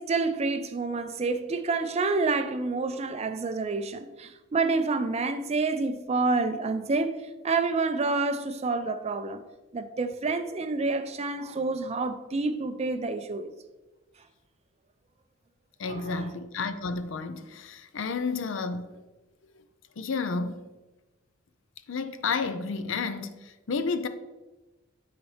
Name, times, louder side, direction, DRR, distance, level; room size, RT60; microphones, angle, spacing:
voice 1, 0.0-9.4 9.7-13.5 15.9-16.3, right 3 dB, 30° right, 0.4 m, -28 dB
voice 2, 15.8-19.0 20.0-20.6 21.9-24.1, left 4 dB, 70° left, 0.5 m, -31 dB
10.0 x 4.1 x 3.2 m
head